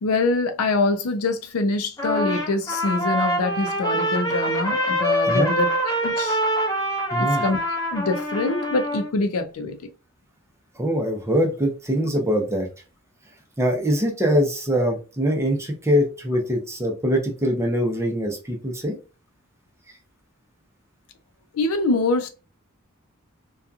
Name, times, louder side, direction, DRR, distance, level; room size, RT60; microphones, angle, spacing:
voice 1, 0.0-5.7 6.0-6.4 7.2-7.6 7.9-9.8 21.5-22.3, left 3 dB, 85° left, 0.5 m, -24 dB
Trumpet, 2.0-9.1, equal, 15° left, 0.9 m, -24 dB
voice 2, 7.1-7.4 10.8-12.7 13.6-19.0, equal, 15° right, 0.6 m, -23 dB
2.7 x 2.3 x 2.4 m
head